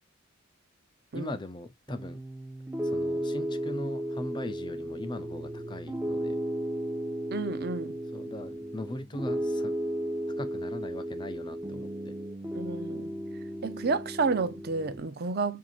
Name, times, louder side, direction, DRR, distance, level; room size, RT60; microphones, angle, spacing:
voice 1, 1.1-2.2 2.8-6.4 8.1-9.7 10.4-12.1, left 1 dB, 20° left, 0.5 m, -40 dB
Piano, 1.9-15.0, right 1 dB, 10° right, 1.1 m, -34 dB
voice 2, 7.3-8.0 12.5-13.1 13.6-15.6, right 4 dB, 50° right, 0.6 m, -30 dB
7.3 x 2.8 x 2.4 m
head